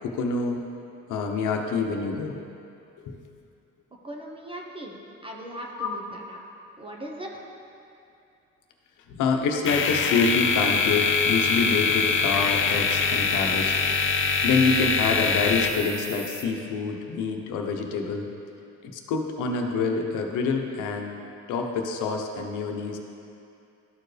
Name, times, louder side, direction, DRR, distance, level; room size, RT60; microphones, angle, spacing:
voice 1, 0.0-0.6 1.1-2.3 3.0-3.2 5.8-5.9 9.1-13.7 14.4-18.3 18.8-21.2 21.5-23.0, left 4 dB, 85° left, 3 dB, 0.9 m, -26 dB
voice 2, 4.0-5.0 5.2-6.4 6.8-7.5, right 1 dB, 15° right, -1 dB, 0.9 m, -38 dB
sound 1, 9.7-16.4, left 5 dB, 40° left, 0.6 m, -24 dB
12.5 x 4.5 x 3.3 m, 2.6 s
cardioid pair, 90°, 30 cm